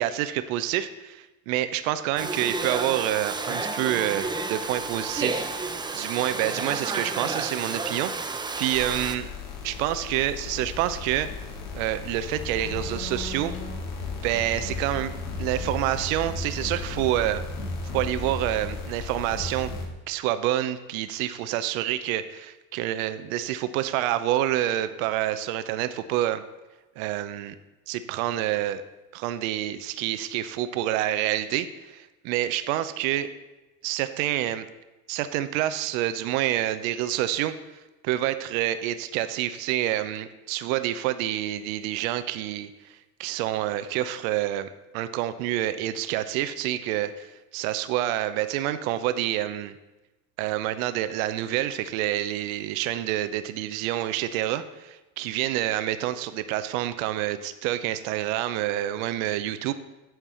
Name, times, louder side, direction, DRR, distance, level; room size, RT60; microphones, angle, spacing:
voice 1, 0.0-9.3 9.6-11.3 11.7-13.5 14.2-15.1 15.4-17.4 17.9-19.7 20.1-26.4 27.0-27.5 27.9-28.8 29.1-33.3 33.8-34.7 35.1-37.5 38.0-42.9 43.2-49.7 50.4-59.7, right 13 dB, 75° right, 12 dB, 0.8 m, -28 dB
Domestic sounds home sounds, 2.2-9.2, right 3 dB, 10° right, 0.6 m, -31 dB
sound 1, 8.7-19.9, left 4 dB, 70° left, 2.7 m, -35 dB
9.2 x 4.7 x 6.8 m, 1.1 s
supercardioid pair, 105°, 41 cm